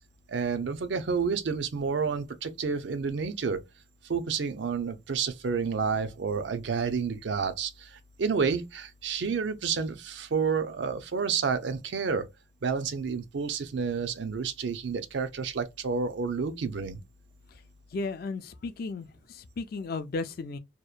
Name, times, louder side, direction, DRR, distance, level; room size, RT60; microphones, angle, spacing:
voice 1, 0.3-3.6 4.0-12.3 12.6-17.0, right 5 dB, 70° right, 0.5 m, -30 dB
voice 2, 17.9-20.6, left 3 dB, 50° left, 0.4 m, -35 dB
2.8 x 2.1 x 2.4 m
head